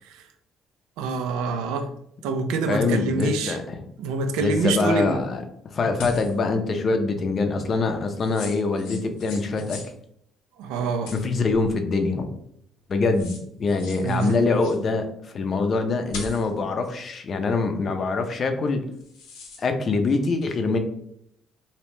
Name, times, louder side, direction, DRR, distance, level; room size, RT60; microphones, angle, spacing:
voice 1, 1.0-1.9 2.2-3.6 4.0-5.2 10.6-11.1 14.0-14.4, right 4 dB, 85° right, 7 dB, 0.3 m, -26 dB
voice 2, 2.7-3.8 4.4-9.8 11.1-12.3 12.9-15.1 15.3-18.8 19.6-20.8, left 3 dB, 45° left, 6 dB, 0.4 m, -24 dB
sound 1, 6.0-6.4 8.2-9.9 11.1-11.8 12.8-12.9 13.1-14.8 16.1-16.6 18.9-19.6, left 3 dB, 85° left, 0.6 m, -40 dB
2.7 x 2.1 x 3.1 m, 0.74 s
supercardioid pair, 80°, 0 cm